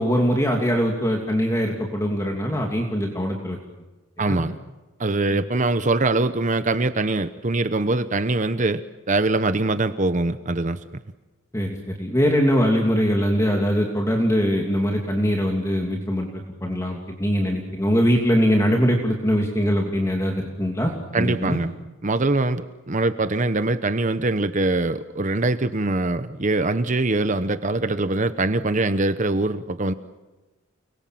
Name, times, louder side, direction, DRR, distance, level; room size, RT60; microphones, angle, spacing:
voice 1, 0.0-3.6 4.2-4.4 5.3-5.4 11.5-21.6, equal, 15° left, 1 dB, 2.9 m, -22 dB
voice 2, 4.2-4.6 5.0-8.8 9.1-10.8 21.1-21.7 22.0-29.9, right 2 dB, 40° right, 11 dB, 1.0 m, -23 dB
30.0 x 22.0 x 7.8 m, 1.1 s
head